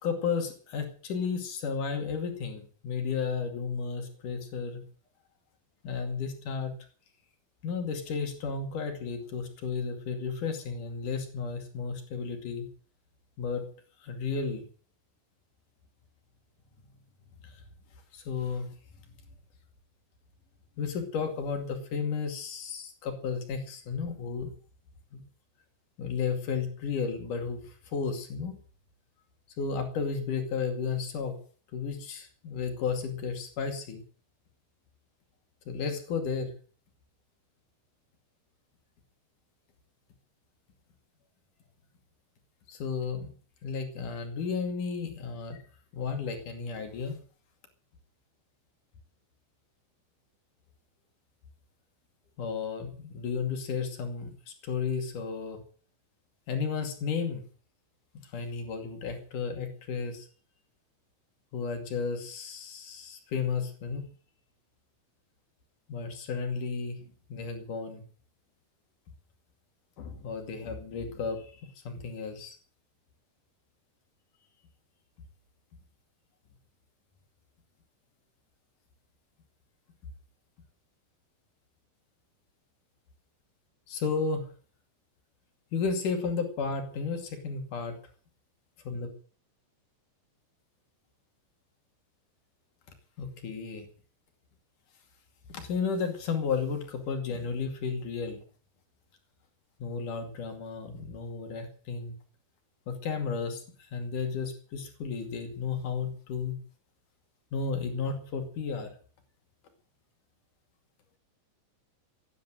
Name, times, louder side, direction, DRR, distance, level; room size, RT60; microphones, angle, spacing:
voice 1, 0.0-4.8 5.8-6.8 7.6-12.7 13.4-13.6 14.0-14.7 17.4-17.6 18.1-18.7 20.8-24.5 25.1-25.2 26.0-28.6 29.6-31.4 31.7-34.0 35.7-36.5 42.7-43.3 43.6-45.6 45.9-47.2 52.4-55.6 56.5-57.5 58.1-60.3 61.5-64.0 65.9-68.0 70.0-72.6 83.9-84.5 85.7-88.0 88.8-89.1 93.2-93.9 95.5-98.4 99.8-102.2 102.9-103.6 103.9-106.6 107.5-108.9, left 5 dB, 85° left, 5 dB, 4.0 m, -33 dB
16.5 x 10.5 x 7.6 m, 0.43 s
omnidirectional pair, 3.5 m